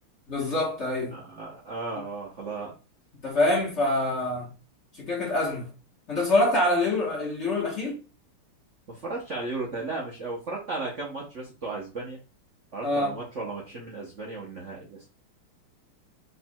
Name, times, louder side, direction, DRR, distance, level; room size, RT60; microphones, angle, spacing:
voice 1, 0.3-1.1 3.2-4.5 5.0-5.7 6.1-8.0 12.8-13.1, left 2 dB, 40° left, 1.2 m, -25 dB
voice 2, 1.1-2.7 8.9-12.2 12.7-15.1, right 3 dB, 55° right, 0.8 m, -35 dB
4.4 x 3.9 x 2.2 m
omnidirectional pair, 2.4 m